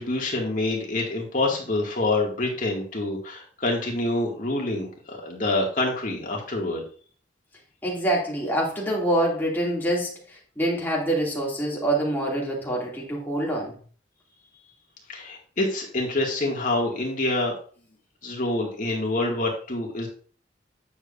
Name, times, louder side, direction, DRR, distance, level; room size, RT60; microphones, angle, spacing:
voice 1, 0.0-6.8 15.1-17.5 18.2-20.1, left 2 dB, 45° left, 2.1 m, -26 dB
voice 2, 7.8-13.8, right 1 dB, 10° left, 2.5 m, -26 dB
9.4 x 7.1 x 2.6 m
head